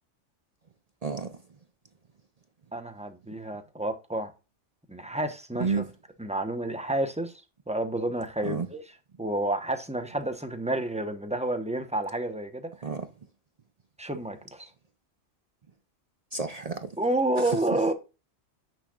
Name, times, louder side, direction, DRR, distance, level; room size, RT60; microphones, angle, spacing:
voice 1, 1.0-1.4 5.6-5.9 8.4-8.7 12.8-13.1 16.3-17.0 17.4-17.6, right 5 dB, 45° right, 0.5 m, -31 dB
voice 2, 2.7-4.3 4.9-5.8 6.2-7.3 7.7-8.8 9.2-12.7 14.0-14.7 17.0-17.9, right 1 dB, 5° right, 0.8 m, -29 dB
8.9 x 6.4 x 2.4 m
omnidirectional pair, 1.3 m